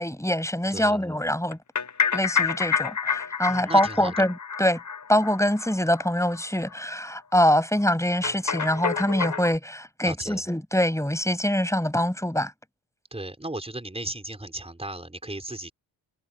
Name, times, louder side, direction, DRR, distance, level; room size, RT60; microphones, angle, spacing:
voice 1, 0.0-1.6 2.1-4.8 5.1-12.5, left 1 dB, 5° left, 7.8 m, -24 dB
voice 2, 0.7-1.1 3.5-4.2 10.0-10.4 13.1-15.7, right 1 dB, 15° right, 5.1 m, -35 dB
sound 1, 1.5-6.1 6.3-6.4 6.7-6.8 7.1-7.2 8.2-9.6, left 6 dB, 40° left, 1.3 m, -28 dB
cardioid pair, 55°, 45 cm